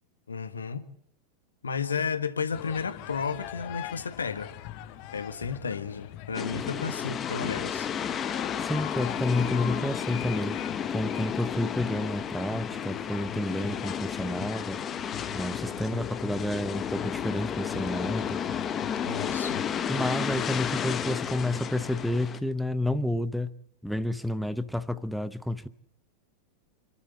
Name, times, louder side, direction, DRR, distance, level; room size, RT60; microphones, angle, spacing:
voice 1, 0.3-0.8 1.6-4.5 5.1-7.9 19.0-19.6, left 6 dB, 70° left, 1.6 m, -32 dB
sound 1, 2.5-22.1, left 13 dB, 45° left, 1.5 m, -42 dB
sound 2, 6.3-22.4, left 8 dB, 25° left, 1.2 m, -32 dB
voice 2, 8.6-10.6 10.9-14.8 15.3-18.4 19.9-23.5 23.8-25.7, left 1 dB, ahead, 0.8 m, -30 dB
27.0 x 12.5 x 8.4 m
figure-of-eight pair, 90°, 0 cm